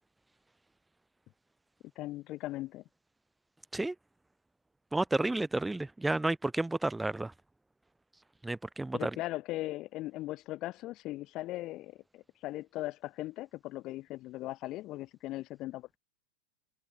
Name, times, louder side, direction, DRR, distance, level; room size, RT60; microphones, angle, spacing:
voice 1, 2.0-2.8 8.9-16.0, left 17 dB, 45° left, 1.9 m, -39 dB
voice 2, 4.9-7.3 8.4-9.1, right 2 dB, 5° right, 1.6 m, -31 dB
hypercardioid pair, 95°, 0 cm